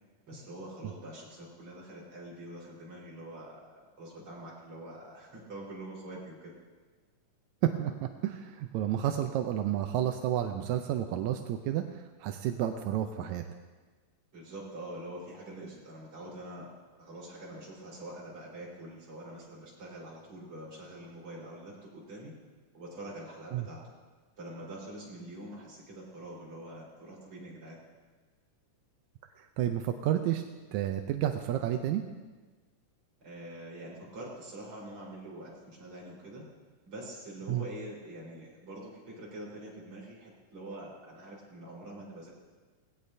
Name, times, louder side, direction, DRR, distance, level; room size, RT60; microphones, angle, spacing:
voice 1, 0.3-6.5 14.3-16.7 17.0-22.3 22.7-23.8 24.4-27.8 33.2-36.4 36.9-42.3, right 1 dB, 40° right, -6 dB, 5.1 m, -45 dB
voice 2, 7.6-13.5 23.5-23.7 29.4-30.4 30.7-32.0 37.5-37.7, right 11 dB, 80° right, 5 dB, 1.7 m, -31 dB
19.0 x 17.0 x 2.7 m, 1.4 s
omnidirectional pair, 3.8 m